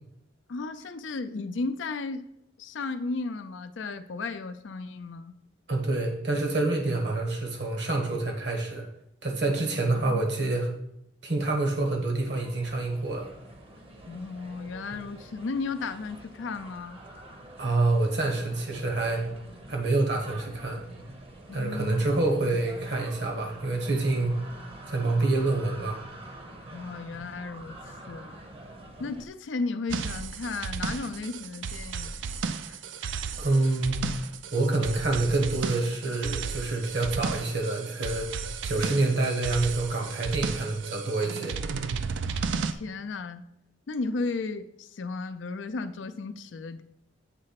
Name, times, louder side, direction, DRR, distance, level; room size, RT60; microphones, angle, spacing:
voice 1, 0.5-2.2 2.6-5.3 9.6-10.4 14.1-17.0 21.5-22.2 26.7-27.8 28.1-28.4 29.0-32.8 42.3-43.5 43.9-46.8, left 3 dB, 85° left, 10 dB, 0.5 m, -35 dB
voice 2, 5.7-8.9 9.2-10.7 11.2-13.3 17.6-19.2 19.7-20.8 21.5-24.4 24.9-26.0 33.4-34.0 34.5-38.3 38.6-41.6, right 2 dB, 65° right, 2 dB, 1.3 m, -27 dB
sound 1, 12.2-29.3, right 1 dB, 30° right, 0.8 m, -46 dB
sound 2, 29.9-42.7, right 5 dB, 85° right, 0.4 m, -34 dB
8.3 x 3.2 x 5.8 m, 0.77 s
head